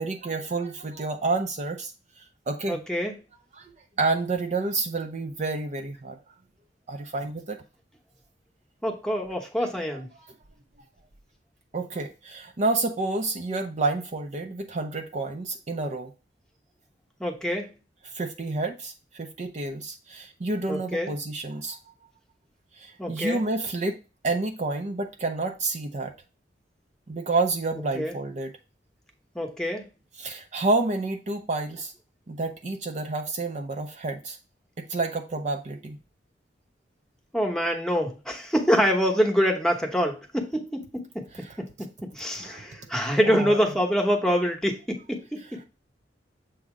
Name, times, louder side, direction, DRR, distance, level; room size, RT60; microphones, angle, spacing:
voice 1, 0.0-1.9 2.5-2.8 3.5-3.6 4.0-6.2 6.9-7.6 9.6-9.7 10.1-10.3 11.7-16.1 18.0-21.8 22.8-24.0 24.2-26.1 27.1-28.5 30.2-31.9 32.3-34.4 34.8-36.0 41.3-41.6 42.3-42.9 43.2-43.6, right 3 dB, 40° right, 4 dB, 0.5 m, -29 dB
voice 2, 2.7-3.2 8.8-10.1 17.2-17.7 20.7-21.1 23.0-23.4 27.9-28.1 29.3-29.8 37.3-41.2 41.6-41.7 42.1-45.6, equal, 5° left, 2 dB, 1.0 m, -25 dB
7.2 x 2.8 x 4.9 m, 0.31 s
head